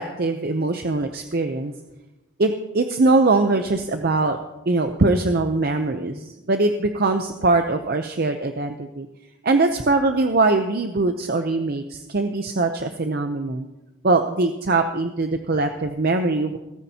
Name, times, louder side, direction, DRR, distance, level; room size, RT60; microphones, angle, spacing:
voice 1, 0.0-1.7 2.4-4.4 4.7-9.1 9.4-13.7 14.0-16.6, right 3 dB, 45° right, 6 dB, 0.7 m, -22 dB
17.5 x 15.0 x 2.9 m, 1.0 s
head